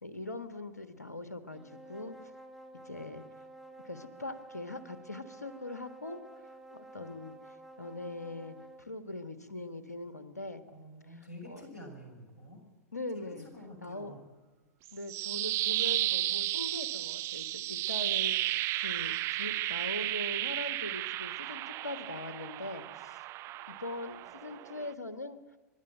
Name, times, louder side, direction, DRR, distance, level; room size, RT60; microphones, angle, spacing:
voice 1, 0.0-2.4 2.8-3.2 3.8-6.2 6.7-10.6 11.5-11.7 12.9-13.5 13.8-14.2 14.9-23.3 23.6-25.4, left 2 dB, 80° left, 11 dB, 1.5 m, -41 dB
sound 1, 1.5-8.9, right 2 dB, ahead, 1.4 m, -51 dB
voice 2, 10.7-12.6 13.1-14.2 24.2-24.3, equal, 90° right, 1 dB, 6.4 m, -49 dB
sound 2, 14.8-24.9, right 17 dB, 30° right, 0.5 m, -33 dB
25.5 x 12.0 x 9.2 m, 1.3 s
figure-of-eight pair, 95°, 9 cm